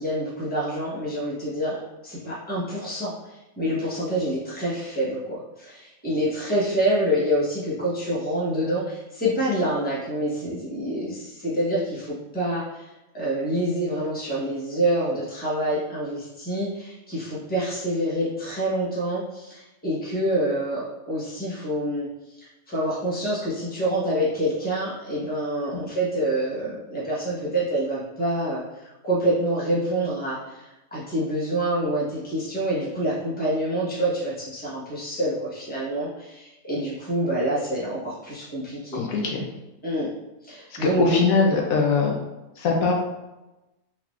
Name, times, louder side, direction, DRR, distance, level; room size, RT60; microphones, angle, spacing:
voice 1, 0.0-22.1 22.7-39.0 39.8-40.1 40.4-41.1, right 1 dB, 5° left, -7 dB, 1.0 m, -27 dB
voice 2, 38.9-39.4 40.8-42.2 42.6-42.9, left 4 dB, 80° left, 0 dB, 1.1 m, -22 dB
3.8 x 2.9 x 2.4 m, 1.0 s
omnidirectional pair, 1.5 m